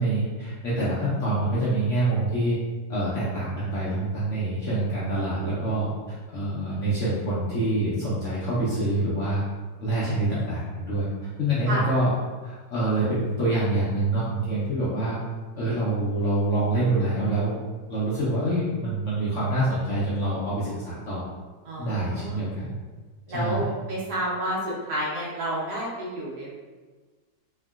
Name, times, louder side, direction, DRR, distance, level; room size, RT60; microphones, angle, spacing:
voice 1, 0.0-2.6 2.9-5.9 6.3-9.4 9.8-11.1 11.4-12.1 12.4-15.2 15.6-17.6 17.9-21.3 21.8-22.7 23.3-23.6, right 1 dB, 65° left, -9 dB, 0.8 m, -26 dB
voice 2, 21.6-22.4 23.3-26.5, equal, 80° right, -6 dB, 1.5 m, -30 dB
3.5 x 2.1 x 2.3 m, 1.4 s
omnidirectional pair, 1.9 m